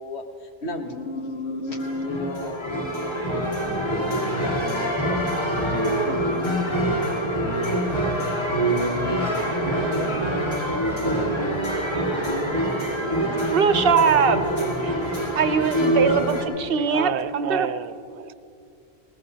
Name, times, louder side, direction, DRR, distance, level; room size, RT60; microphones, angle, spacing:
voice 1, 0.0-5.2 6.0-6.5, left 2 dB, 80° left, 4 dB, 1.4 m, -33 dB
sound 1, 1.7-16.4, right 1 dB, 25° left, 2.0 m, -25 dB
voice 2, 13.5-14.5 15.4-17.7, right 6 dB, 65° right, 10 dB, 0.9 m, -21 dB
voice 3, 14.8-15.3 16.8-18.3, right 10 dB, 90° right, 14 dB, 0.9 m, -32 dB
20.0 x 19.0 x 2.9 m, 2.5 s
omnidirectional pair, 1.1 m